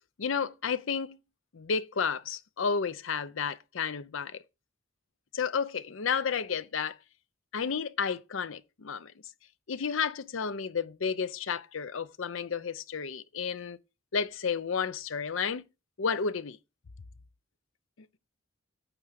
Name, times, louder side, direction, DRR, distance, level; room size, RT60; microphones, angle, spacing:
voice 1, 0.2-1.2 1.5-4.4 5.3-7.0 7.5-9.1 9.7-13.8 14.1-15.6 16.0-16.6, left 6 dB, 75° left, 0.6 m, -31 dB
8.9 x 3.7 x 6.4 m
head